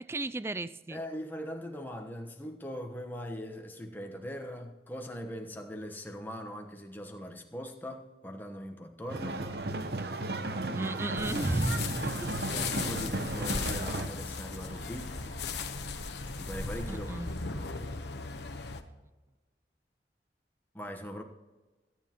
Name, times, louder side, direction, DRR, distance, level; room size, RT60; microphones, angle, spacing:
voice 1, 0.1-1.0 10.7-12.1 16.9-17.3, right 2 dB, 15° right, 15 dB, 0.3 m, -33 dB
voice 2, 0.9-9.5 10.9-11.0 12.3-15.2 16.4-17.4 20.7-21.2, equal, 10° left, 3 dB, 1.1 m, -41 dB
sound 1, 9.1-14.1, right 2 dB, 60° right, 0.8 m, -34 dB
sound 2, 9.1-17.8, right 2 dB, 75° right, 2.6 m, -53 dB
sound 3, 11.2-18.8, left 4 dB, 70° left, 1.0 m, -37 dB
23.0 x 9.5 x 3.0 m, 1.2 s
head